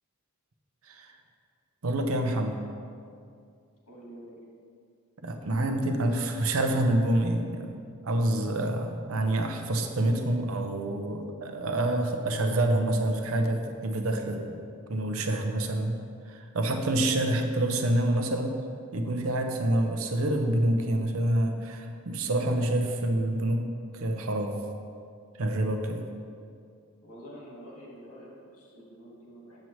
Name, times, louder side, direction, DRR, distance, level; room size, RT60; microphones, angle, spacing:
voice 1, 1.8-2.6 5.2-7.8 8.0-14.6 14.9-16.0 16.3-18.6 18.9-23.6 23.9-24.6 25.4-26.1, right 1 dB, 70° right, 5 dB, 0.7 m, -27 dB
voice 2, 3.9-4.4 27.0-29.6, equal, 90° left, -4 dB, 1.9 m, -47 dB
7.6 x 7.2 x 3.1 m, 2.3 s
head